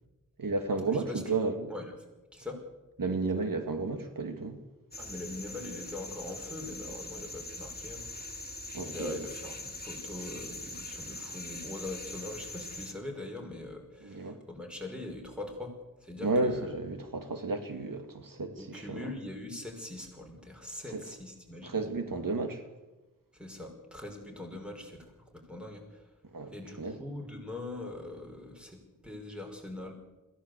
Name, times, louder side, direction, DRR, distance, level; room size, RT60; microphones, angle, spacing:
voice 1, 0.4-1.7 3.0-4.6 8.7-9.2 14.0-14.4 16.2-19.1 20.9-21.0 21.6-22.6 26.3-27.0, right 3 dB, 80° right, 2.3 m, -32 dB
sound 1, 4.9-12.9, left 2 dB, 30° left, 2.6 m, -42 dB
voice 2, 5.0-8.1 8.8-15.7 16.0-16.7 18.6-21.9 23.3-26.0 26.4-29.9, left 2 dB, 5° right, 5.9 m, -42 dB
22.0 x 16.5 x 8.3 m
wide cardioid pair, 60°, 33 cm